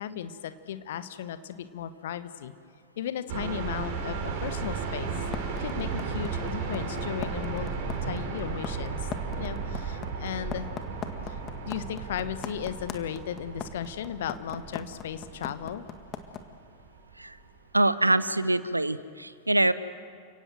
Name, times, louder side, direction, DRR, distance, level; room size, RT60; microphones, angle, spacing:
voice 1, 0.0-2.5 3.0-5.1 5.6-7.7 8.0-9.1 9.4-10.7 11.3-11.4 11.7-15.8, left 9 dB, 60° left, 12 dB, 1.3 m, -36 dB
sound 1, 3.3-17.2, right 5 dB, 50° right, 5.2 m, -35 dB
sound 2, 5.3-16.4, left 8 dB, 30° left, 1.8 m, -38 dB
voice 2, 17.7-19.7, right 1 dB, 85° right, 15 dB, 0.8 m, -24 dB
30.0 x 17.5 x 7.8 m, 2.1 s
figure-of-eight pair, 90°, 0 cm